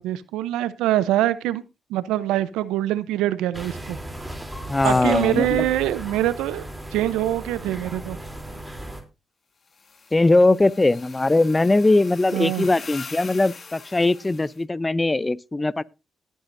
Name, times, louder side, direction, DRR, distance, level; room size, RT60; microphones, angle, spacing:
voice 1, 0.0-1.6 1.9-4.0 4.8-6.6 6.9-8.2 12.3-12.7, right 14 dB, 85° right, 0.7 m, -24 dB
sound 1, 3.5-9.0, right 1 dB, 5° right, 3.3 m, -36 dB
voice 2, 4.7-5.7 10.1-15.8, left 2 dB, 20° left, 0.6 m, -20 dB
sound 2, 9.7-14.6, left 4 dB, 45° left, 1.7 m, -42 dB
18.0 x 9.3 x 2.7 m
supercardioid pair, 55°, 0 cm